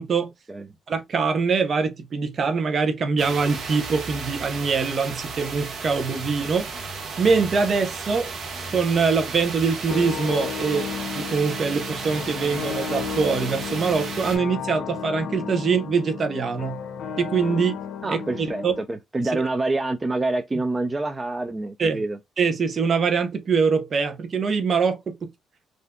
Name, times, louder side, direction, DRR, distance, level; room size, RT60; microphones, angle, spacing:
voice 1, 0.0-0.3 0.9-6.7 7.2-8.3 8.7-10.9 11.2-16.8 17.2-17.8 18.1-18.7 21.8-22.0 22.4-25.3, right 5 dB, 50° right, 0.7 m, -23 dB
sound 1, 3.2-14.4, right 4 dB, 65° right, 1.0 m, -34 dB
sound 2, 9.9-18.8, left 7 dB, 70° left, 0.7 m, -33 dB
voice 2, 18.0-22.2, right 2 dB, 20° right, 0.4 m, -27 dB
3.6 x 2.6 x 2.2 m
cardioid pair, 90°, 0 cm